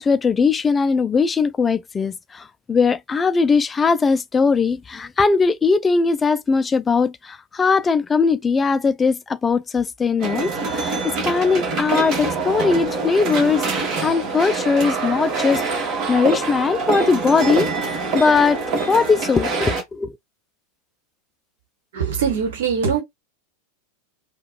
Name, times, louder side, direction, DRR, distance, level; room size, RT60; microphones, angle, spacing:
voice 1, 0.0-18.6 18.9-20.1, left 4 dB, 15° left, 0.3 m, -20 dB
sound 1, 10.2-19.8, right 4 dB, 35° right, 1.4 m, -25 dB
voice 2, 21.9-23.0, right 6 dB, 55° right, 1.3 m, -22 dB
4.6 x 2.3 x 2.2 m
figure-of-eight pair, 90°, 0 cm